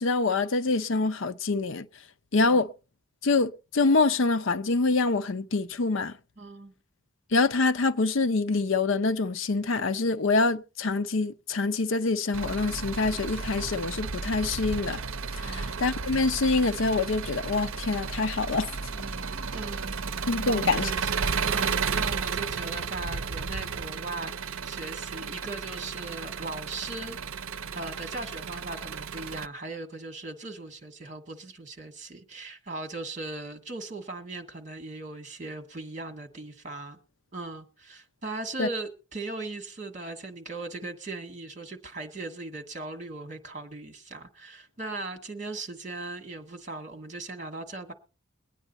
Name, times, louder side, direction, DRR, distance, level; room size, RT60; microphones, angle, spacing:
voice 1, 0.0-1.9 2.3-2.7 3.2-6.1 7.3-15.0 15.4-18.7 20.3-20.9 38.6-38.7, left 3 dB, 65° left, 0.6 m, -25 dB
voice 2, 6.4-6.7 15.4-15.8 18.9-21.1 21.4-27.2 27.7-37.0 37.3-47.9, right 2 dB, 35° right, 1.8 m, -39 dB
Engine, 12.3-29.5, right 5 dB, 75° right, 0.6 m, -33 dB
22.5 x 9.0 x 4.1 m
head